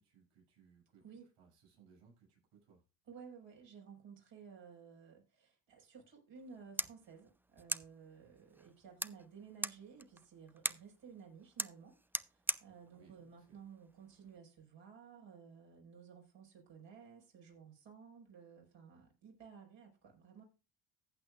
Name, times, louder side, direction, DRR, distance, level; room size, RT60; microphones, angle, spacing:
voice 1, 0.0-1.1 1.4-2.8 12.9-13.6, right 6 dB, 90° right, 6.9 m, -65 dB
voice 2, 1.0-1.3 3.1-20.4, right 6 dB, 60° right, 5.6 m, -55 dB
sound 1, 6.4-14.4, right 1 dB, 5° right, 0.4 m, -44 dB
15.0 x 8.7 x 2.5 m
supercardioid pair, 80°, 48 cm